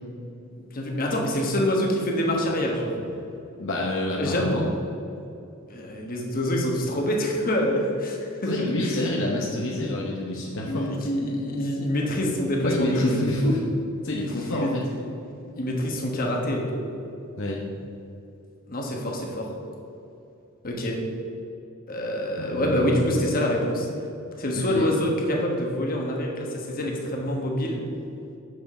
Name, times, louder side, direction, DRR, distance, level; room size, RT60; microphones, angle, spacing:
voice 1, 0.6-2.9 4.2-4.5 5.7-9.0 10.6-13.1 14.5-14.7 15.6-16.7 18.7-19.5 20.6-21.0 21.9-23.9 24.4-27.8, equal, 45° left, 0 dB, 1.3 m, -26 dB
voice 2, 3.6-4.7 8.5-10.9 12.6-13.6 14.0-14.8 17.4-17.6 22.4-23.0 24.5-24.9, left 1 dB, 65° left, -2 dB, 0.9 m, -27 dB
6.8 x 6.3 x 5.3 m, 2.7 s
head